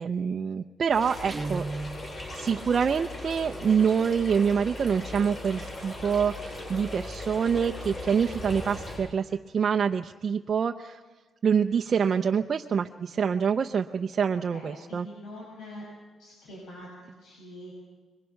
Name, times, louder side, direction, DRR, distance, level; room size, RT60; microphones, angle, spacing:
voice 1, 0.0-1.6 2.3-11.0 11.4-15.1, right 6 dB, 35° right, 4 dB, 0.6 m, -26 dB
sound 1, 0.9-9.0, left 2 dB, 35° left, 7.4 m, -38 dB
Guitar, 1.3-2.1, right 3 dB, 15° right, 1.0 m, -33 dB
voice 2, 14.5-15.8 16.2-17.7, left 1 dB, 85° left, -3 dB, 6.7 m, -44 dB
26.5 x 22.5 x 5.8 m, 1.3 s
cardioid pair, 165°, 0 cm